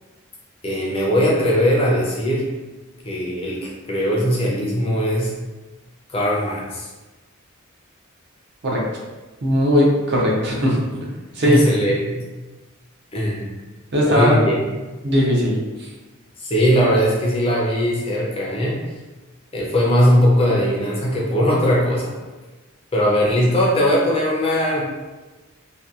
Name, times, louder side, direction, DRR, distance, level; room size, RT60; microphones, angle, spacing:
voice 1, 0.6-2.5 3.0-5.3 6.1-6.9 11.4-12.2 13.1-13.5 14.0-14.8 16.4-18.8 19.5-22.1 22.9-24.8, equal, 25° left, -4 dB, 0.4 m, -19 dB
voice 2, 9.4-10.8 11.3-11.6 13.9-14.5 15.0-15.6, equal, 50° right, -3 dB, 0.5 m, -18 dB
2.7 x 2.2 x 2.3 m, 1.2 s
head